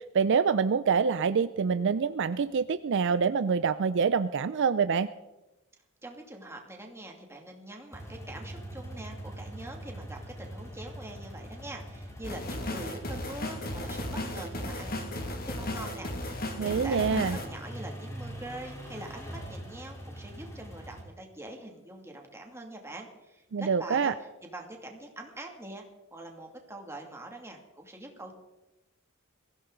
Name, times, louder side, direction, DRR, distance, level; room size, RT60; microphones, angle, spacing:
voice 1, 0.1-5.1 16.6-17.4 23.5-24.1, right 5 dB, 60° right, 13 dB, 0.5 m, -26 dB
voice 2, 6.0-25.8 26.1-28.3, right 1 dB, 10° right, 2 dB, 2.4 m, -44 dB
sound 1, 7.9-21.0, right 1 dB, 15° left, 3.8 m, -42 dB
sound 2, 12.2-17.5, left 1 dB, 45° left, 2.2 m, -35 dB
22.5 x 15.5 x 3.9 m, 1.0 s
head